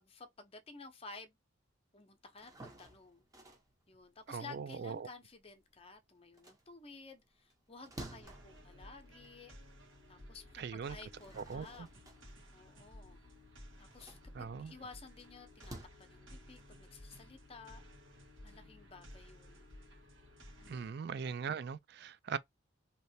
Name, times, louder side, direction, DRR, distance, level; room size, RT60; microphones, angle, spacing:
voice 1, 0.0-1.4 1.9-3.3 3.9-9.5 10.1-11.9 12.5-13.2 13.8-17.8 18.4-19.6 20.6-21.0, left 4 dB, 30° left, 0.7 m, -54 dB
sound 1, 2.2-5.8 6.2-9.7 10.2-10.3 10.9-15.8, right 1 dB, 20° right, 0.9 m, -54 dB
voice 2, 4.3-5.1 10.6-11.0 11.4-11.7 14.4-14.7 20.7-22.4, right 6 dB, 55° right, 0.3 m, -40 dB
sound 2, 8.2-20.9, left 1 dB, 85° right, 1.4 m, -56 dB
3.2 x 2.9 x 2.7 m
head